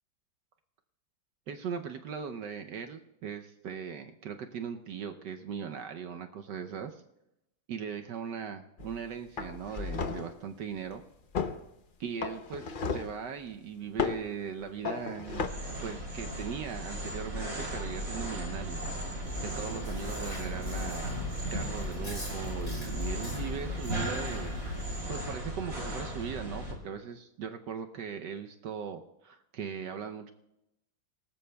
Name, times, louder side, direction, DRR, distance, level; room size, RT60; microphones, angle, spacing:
voice 1, 1.5-7.0 7.7-11.0 12.0-15.5 15.8-18.8 19.4-24.5 25.1-30.3, right 7 dB, 70° right, 6 dB, 1.3 m, -39 dB
sound 1, 8.8-9.0 9.4-10.4 11.3-11.6 12.2-13.2 14.0-14.3 14.8-15.5, left 5 dB, 85° left, 0.4 m, -34 dB
sound 2, 15.3-26.7, right 1 dB, 45° right, 4.3 m, -36 dB
Chewing mastication, 19.2-25.0, left 2 dB, 25° left, 8.3 m, -40 dB
29.5 x 19.0 x 2.3 m, 0.88 s
omnidirectional pair, 2.1 m